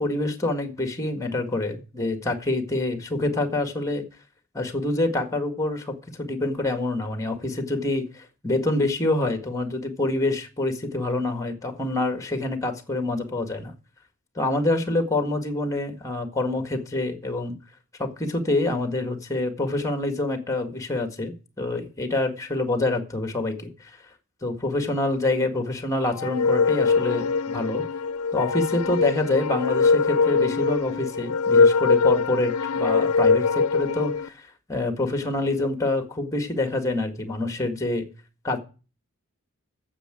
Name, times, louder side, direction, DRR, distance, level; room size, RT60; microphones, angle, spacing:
voice 1, 0.0-4.0 4.5-13.7 14.4-17.6 18.0-23.9 24.4-27.8 28.3-38.1 38.4-38.6, left 2 dB, 15° left, 7 dB, 1.8 m, -26 dB
sound 1, 26.1-34.3, left 4 dB, 90° left, 0.6 m, -22 dB
9.9 x 7.6 x 9.0 m, 0.36 s
head